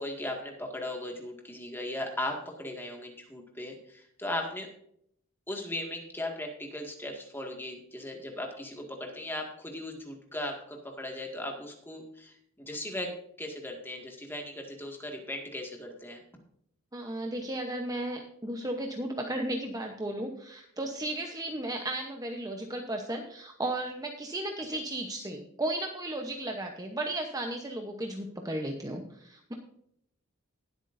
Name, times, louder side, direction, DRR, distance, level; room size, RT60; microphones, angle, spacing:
voice 1, 0.0-4.7 5.5-16.2 24.7-24.8, left 1 dB, 10° left, 1 dB, 2.0 m, -38 dB
voice 2, 16.9-29.5, right 1 dB, 15° right, 2 dB, 0.9 m, -35 dB
19.5 x 8.2 x 2.7 m, 0.69 s
head